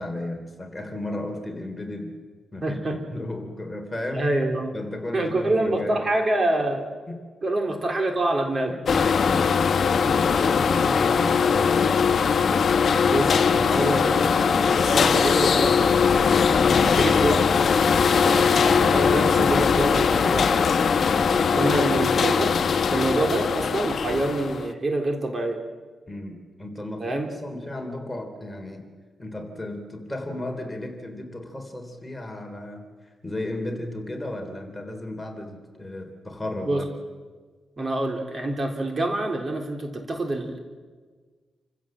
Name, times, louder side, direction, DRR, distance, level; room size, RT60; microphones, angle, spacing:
voice 1, 0.0-2.2 2.5-4.3 4.7-6.0 7.1-7.3 8.7-9.4 9.9-12.2 21.3-21.7 26.1-28.9 29.2-32.9 33.2-36.9, left 1 dB, 15° left, 4 dB, 3.3 m, -34 dB
voice 2, 2.6-3.0 4.1-4.8 5.1-6.9 7.4-9.1 10.1-10.2 13.1-15.8 16.7-17.4 18.1-20.5 21.5-22.6 22.9-25.6 27.0-27.3 36.7-36.8 37.8-40.6, right 2 dB, 35° right, 3 dB, 3.4 m, -26 dB
sound 1, 8.9-24.7, left 6 dB, 55° left, 1.3 m, -20 dB
28.0 x 16.0 x 7.6 m, 1.5 s
cardioid pair, 105°, 0 cm